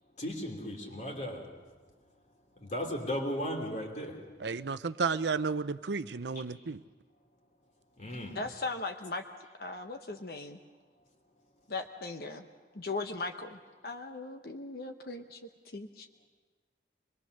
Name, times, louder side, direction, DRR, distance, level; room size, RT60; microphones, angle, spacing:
voice 1, 0.2-1.7 2.6-4.3 8.0-8.4, equal, 45° left, 2.9 m, -36 dB
voice 2, 4.4-6.8, right 4 dB, 80° right, 0.6 m, -32 dB
voice 3, 8.3-9.2 9.6-10.6 11.7-12.4 12.7-15.4 15.7-16.1, left 3 dB, 60° left, 1.0 m, -38 dB
24.5 x 21.5 x 6.6 m
head